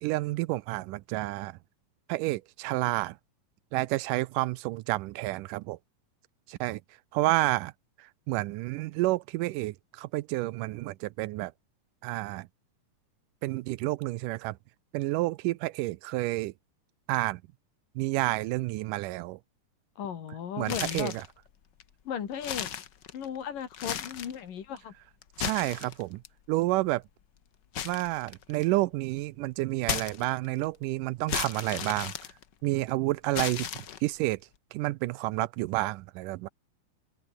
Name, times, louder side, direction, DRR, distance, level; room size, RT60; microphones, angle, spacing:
voice 1, 0.0-1.6 2.1-3.2 3.7-5.8 6.5-6.8 7.1-7.7 8.0-11.5 12.0-12.5 13.4-14.6 14.9-16.5 17.1-17.4 18.0-19.4 20.6-21.2 25.4-26.2 26.5-27.0 27.9-32.1 32.6-34.4 34.7-36.5, right 19 dB, 85° right, 2.2 m, -30 dB
voice 2, 20.0-21.2 22.1-22.7 23.1-24.9, left 8 dB, 80° left, 4.2 m, -36 dB
sound 1, 20.6-21.3 21.8-21.9 22.3-23.4 23.7-24.4 25.2-26.3 27.7-28.8 29.8-30.6 31.3-32.8 33.3-34.2, left 9 dB, 60° left, 1.1 m, -35 dB
omnidirectional pair, 3.8 m